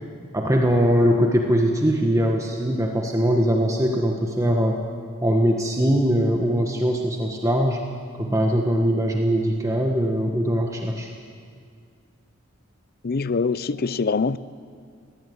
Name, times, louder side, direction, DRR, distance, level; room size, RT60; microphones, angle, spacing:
voice 1, 0.3-4.8 5.2-7.8 8.2-11.1, equal, 15° right, 2 dB, 1.4 m, -21 dB
voice 2, 13.0-14.4, left 4 dB, 50° left, 17 dB, 0.5 m, -24 dB
22.0 x 16.5 x 9.5 m, 2.2 s
head